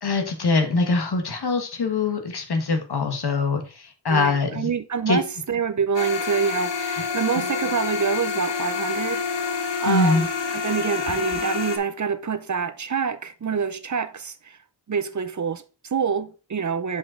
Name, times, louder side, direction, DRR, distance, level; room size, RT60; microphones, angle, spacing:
voice 1, 0.0-4.7 5.1-5.2 9.8-10.2, left 3 dB, 65° left, 1.6 m, -23 dB
voice 2, 4.1-9.2 9.6-14.6 14.9-17.0, right 6 dB, 45° right, 0.7 m, -26 dB
sound 1, 5.9-11.8, left 5 dB, 85° left, 1.4 m, -27 dB
7.2 x 5.4 x 3.7 m
wide cardioid pair, 100°, 42 cm